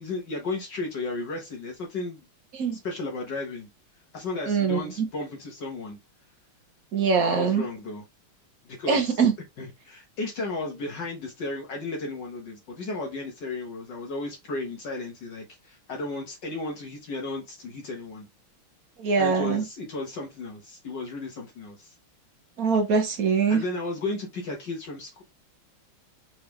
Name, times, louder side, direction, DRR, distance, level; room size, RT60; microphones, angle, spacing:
voice 1, 0.0-2.3 2.7-3.7 4.1-6.0 7.3-8.0 8.7-9.2 9.6-18.3 19.2-21.9 23.5-25.2, left 2 dB, 60° left, 1.8 m, -34 dB
voice 2, 4.5-5.1 6.9-7.6 8.9-9.3 19.0-19.7 22.6-23.6, right 5 dB, 50° right, 1.2 m, -23 dB
4.7 x 3.4 x 3.1 m
omnidirectional pair, 2.4 m